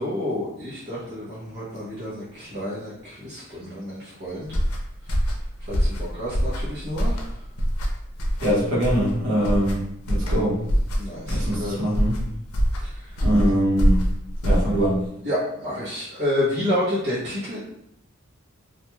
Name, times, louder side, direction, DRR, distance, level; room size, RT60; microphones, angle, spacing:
voice 1, 0.0-4.5 5.7-7.2 11.0-11.9 15.2-17.6, left 1 dB, 50° right, -10 dB, 0.8 m, -29 dB
sound 1, 4.4-15.1, equal, 90° left, 0.5 m, -24 dB
voice 2, 8.4-10.6 11.3-12.2 13.2-14.1 14.4-15.1, equal, 70° right, -6 dB, 1.1 m, -23 dB
2.4 x 2.2 x 3.0 m, 0.74 s
head